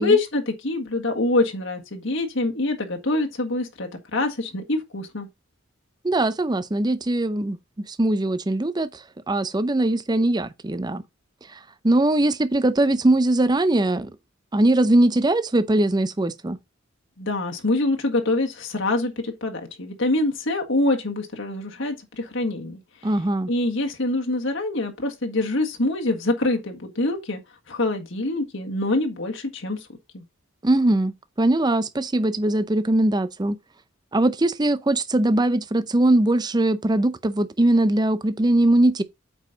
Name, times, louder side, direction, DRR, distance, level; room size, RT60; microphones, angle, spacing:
voice 1, 0.0-5.3 17.2-22.8 23.5-27.4 27.7-29.8 30.1-30.2, left 2 dB, 60° left, 1.7 m, -25 dB
voice 2, 6.0-8.9 9.3-11.0 11.8-14.1 14.5-16.6 23.0-23.5 30.6-31.1 31.4-33.6 34.1-39.0, right 1 dB, 20° right, 0.6 m, -21 dB
8.4 x 5.2 x 4.0 m
head